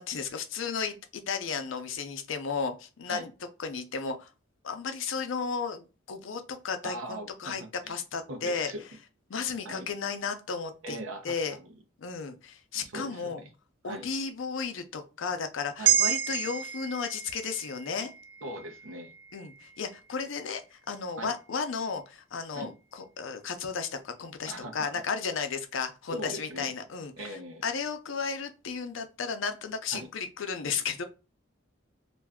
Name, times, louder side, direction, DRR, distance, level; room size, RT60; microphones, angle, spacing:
voice 1, 0.0-3.3 3.6-4.3 4.6-8.7 9.3-11.0 11.2-11.6 12.0-13.4 13.8-18.1 19.3-31.0, left 5 dB, 75° left, 0.5 m, -34 dB
voice 2, 6.8-7.9 8.3-8.8 9.6-9.9 10.8-11.3 12.7-13.4 13.8-14.1 15.8-15.9 18.4-19.1 21.2-21.3 22.5-22.7 24.5-25.0 26.1-26.7 27.2-27.6 29.9-30.1, right 1 dB, 85° right, 0.7 m, -40 dB
sound 1, 15.8-20.3 20.7-20.9, right 10 dB, 65° right, 0.3 m, -31 dB
2.5 x 2.3 x 3.4 m
head